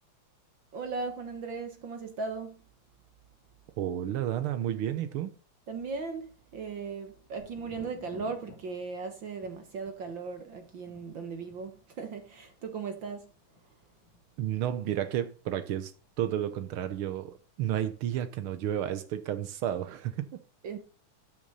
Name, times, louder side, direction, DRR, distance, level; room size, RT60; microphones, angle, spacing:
voice 1, 0.7-2.6 5.7-13.3 20.6-20.8, right 4 dB, 55° right, 1.5 m, -37 dB
voice 2, 3.8-5.3 14.4-15.9 16.2-20.4, right 11 dB, 80° right, 1.2 m, -31 dB
Thunder, 7.4-17.0 17.3-18.0, left 4 dB, 75° left, 3.6 m, -56 dB
12.5 x 6.2 x 4.0 m
omnidirectional pair, 3.4 m